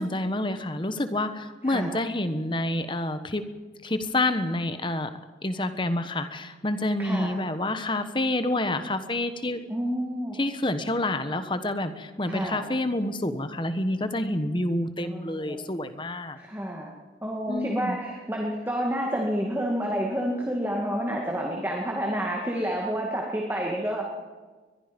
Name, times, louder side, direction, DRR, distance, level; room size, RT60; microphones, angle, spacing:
voice 1, 0.0-3.4 3.8-5.1 5.4-9.6 10.4-16.4 17.5-18.0, left 1 dB, 25° left, 10 dB, 1.3 m, -28 dB
voice 2, 7.0-7.4 9.7-10.4 12.2-12.7 15.0-15.6 16.4-16.9 17.2-24.1, equal, 10° right, -1 dB, 2.2 m, -29 dB
23.0 x 21.5 x 5.3 m, 1.4 s
head